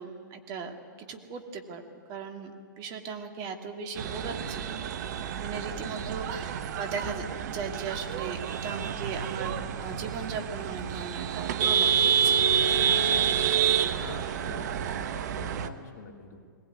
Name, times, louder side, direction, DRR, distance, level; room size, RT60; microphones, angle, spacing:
voice 1, 0.0-1.8 2.1-4.7 5.4-12.4, right 5 dB, 35° right, 5 dB, 2.5 m, -37 dB
sound 1, 4.0-15.7, right 8 dB, 55° right, 1.2 m, -28 dB
voice 2, 14.0-16.4, left 4 dB, 60° left, 3 dB, 2.8 m, -46 dB
21.0 x 19.0 x 9.6 m, 2.1 s
hypercardioid pair, 115°, 11 cm